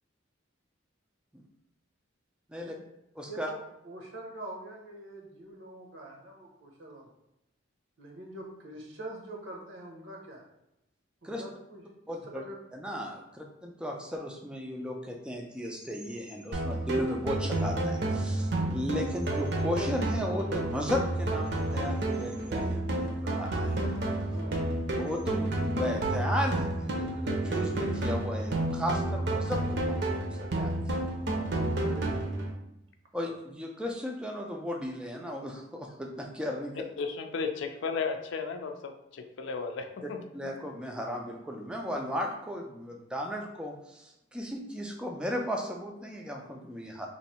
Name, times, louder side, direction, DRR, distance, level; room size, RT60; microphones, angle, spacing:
voice 1, 3.2-3.5 11.2-11.4 12.1-12.4 12.7-23.8 24.9-31.0 33.1-36.9 40.0-47.1, left 1 dB, 5° right, 1 dB, 0.3 m, -35 dB
voice 2, 3.8-7.0 8.0-10.4 11.2-12.5 24.3-24.7 31.5-32.2, right 1 dB, 80° right, 0 dB, 0.9 m, -44 dB
sound 1, 16.5-32.5, right 1 dB, 55° right, 0.6 m, -30 dB
voice 3, 37.0-40.2, left 5 dB, 75° left, 6 dB, 0.4 m, -34 dB
3.1 x 2.6 x 4.2 m, 0.87 s
head